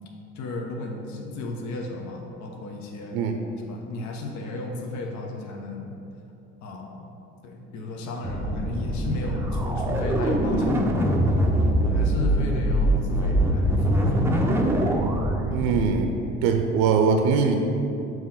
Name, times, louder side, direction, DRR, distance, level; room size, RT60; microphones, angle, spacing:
voice 1, 0.3-3.2 3.7-5.9 6.6-7.1 7.4-11.1 11.7-14.6, left 2 dB, 50° left, 1 dB, 0.9 m, -34 dB
sound 1, 8.2-15.9, equal, 5° right, 0.6 m, -23 dB
voice 2, 15.5-16.1 16.4-17.6, right 5 dB, 60° right, 5 dB, 0.6 m, -22 dB
7.1 x 3.1 x 5.6 m, 2.7 s
hypercardioid pair, 65°, 37 cm